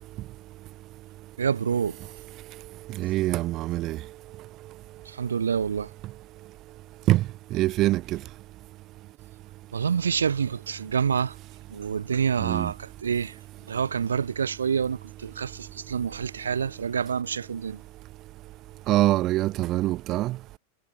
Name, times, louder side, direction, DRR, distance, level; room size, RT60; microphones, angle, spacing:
voice 1, 1.4-2.0 5.0-5.9 9.7-11.4 11.7-13.4 13.7-17.8, right 7 dB, 80° right, 1.4 m, -27 dB
voice 2, 3.0-4.0 7.1-7.2 7.5-8.0 12.4-12.7 18.9-20.4, right 16 dB, 40° right, 1.6 m, -24 dB
figure-of-eight pair, 90°, 0 cm